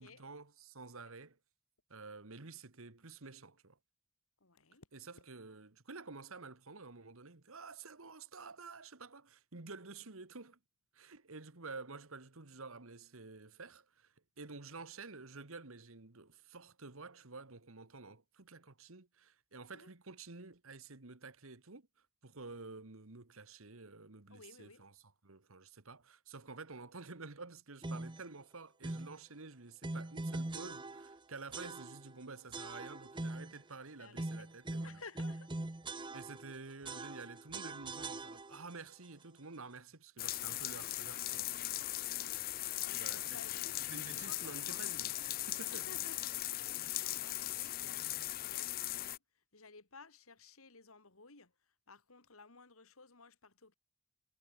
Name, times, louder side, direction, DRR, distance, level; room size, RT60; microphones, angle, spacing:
voice 1, 0.0-1.4 1.9-3.8 4.9-10.6 10.9-21.9 22.2-24.9 25.2-35.0 36.1-41.9 42.9-43.4 43.9-45.1 45.5-45.9, right 3 dB, 70° right, 1.7 m, -50 dB
voice 2, 4.4-4.9 19.7-19.9 24.3-24.8 34.0-34.5 34.8-35.5 42.8-44.8 45.7-53.7, left 4 dB, 75° left, 2.9 m, -57 dB
sound 1, 27.8-28.3 28.8-29.2 29.8-31.2 31.5-32.1 32.5-33.6 34.1-36.5 36.8-38.7, right 2 dB, 20° right, 0.8 m, -42 dB
sound 2, 40.2-49.2, left 16 dB, 40° left, 0.4 m, -39 dB
head